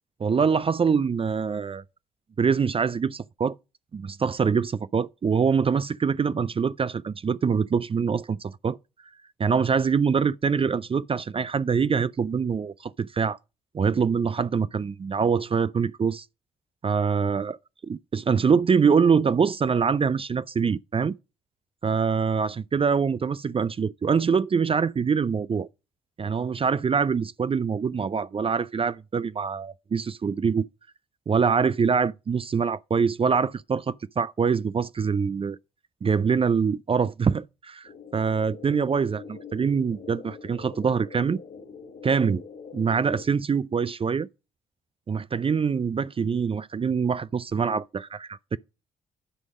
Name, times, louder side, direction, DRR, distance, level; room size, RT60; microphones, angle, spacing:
voice 1, 0.2-1.8 2.4-3.5 3.9-8.8 9.4-13.4 13.7-16.2 16.8-17.6 17.8-21.2 21.8-25.7 26.2-30.7 31.3-35.6 36.0-41.4 42.0-42.4 42.7-44.3 45.1-48.6, right 6 dB, 30° right, 0.5 m, -24 dB
sound 1, 37.8-43.3, left 5 dB, 45° left, 2.4 m, -44 dB
10.0 x 5.2 x 6.2 m
hypercardioid pair, 45°, 19 cm